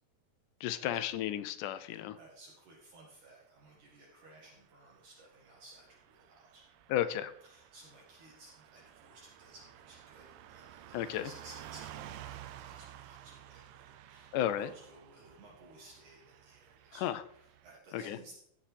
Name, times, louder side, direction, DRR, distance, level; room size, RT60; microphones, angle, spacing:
voice 1, 0.6-2.2 6.9-7.3 10.9-11.3 14.3-14.7 17.0-17.2 17.9-18.2, left 11 dB, 80° left, 11 dB, 1.9 m, -33 dB
voice 2, 1.7-6.6 7.4-18.3, right 2 dB, 65° right, -3 dB, 3.1 m, -57 dB
Car passing by / Truck, 4.8-17.8, right 11 dB, 90° right, 2.4 m, -52 dB
16.0 x 7.1 x 3.4 m, 0.72 s
omnidirectional pair, 3.9 m